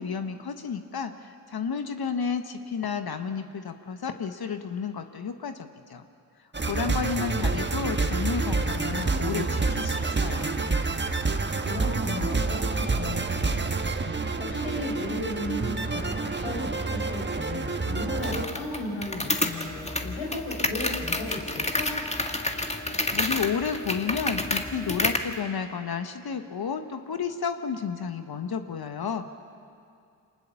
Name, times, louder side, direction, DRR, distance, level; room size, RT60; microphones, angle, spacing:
voice 1, 0.0-6.0 6.7-10.6 23.1-29.2, left 6 dB, 50° left, 8 dB, 1.4 m, -31 dB
sound 1, 6.5-18.5, right 3 dB, 25° right, 1.4 m, -28 dB
voice 2, 11.6-13.9 14.4-21.9, left 2 dB, 85° left, -1 dB, 5.1 m, -35 dB
sound 2, 18.2-25.3, left 1 dB, 15° left, 1.9 m, -29 dB
25.0 x 19.0 x 7.0 m, 2.5 s
hypercardioid pair, 45°, 47 cm